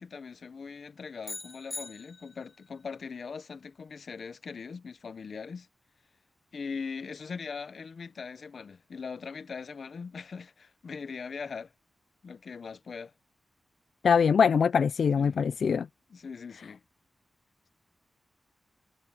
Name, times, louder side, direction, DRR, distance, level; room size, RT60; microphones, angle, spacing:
voice 1, 0.0-5.7 6.5-11.7 12.2-13.1 15.2-15.4 16.1-16.8, left 5 dB, 60° left, 0.8 m, -41 dB
sound 1, 1.2-2.6, left 3 dB, 30° left, 1.4 m, -42 dB
voice 2, 14.0-15.9, left 6 dB, 80° left, 0.3 m, -23 dB
wide cardioid pair, 130°, 0 cm